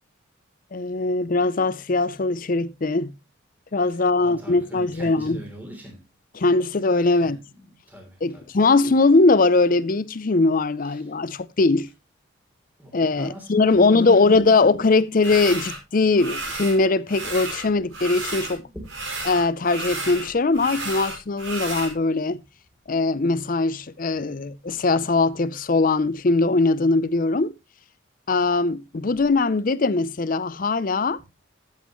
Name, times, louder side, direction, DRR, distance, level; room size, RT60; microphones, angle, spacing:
voice 1, 0.7-3.1 3.7-5.4 6.4-7.4 8.2-11.9 12.9-18.7 19.3-22.4 22.9-27.5 28.3-31.2, left 3 dB, 40° left, 0.5 m, -21 dB
voice 2, 4.2-6.0 7.1-8.5 10.8-11.1 12.8-14.7 18.7-18.8, equal, 10° right, 3.2 m, -41 dB
sound 1, 15.2-15.8 16.2-16.8 17.1-18.6 18.8-21.9, right 2 dB, 80° right, 5.3 m, -32 dB
13.5 x 8.5 x 3.0 m
head